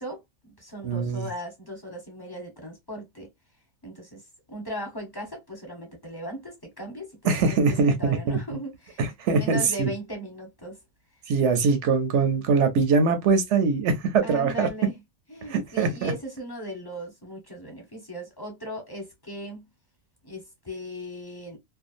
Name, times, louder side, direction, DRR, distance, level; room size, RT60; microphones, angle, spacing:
voice 1, 0.0-3.3 3.8-10.8 14.2-15.0 15.3-19.7 20.2-21.6, equal, 20° left, 0.9 m, -38 dB
voice 2, 0.8-1.3 7.2-8.4 9.0-9.9 11.3-14.7 15.5-16.1, right 4 dB, 80° right, 1.0 m, -22 dB
2.7 x 2.2 x 2.4 m
omnidirectional pair, 1.2 m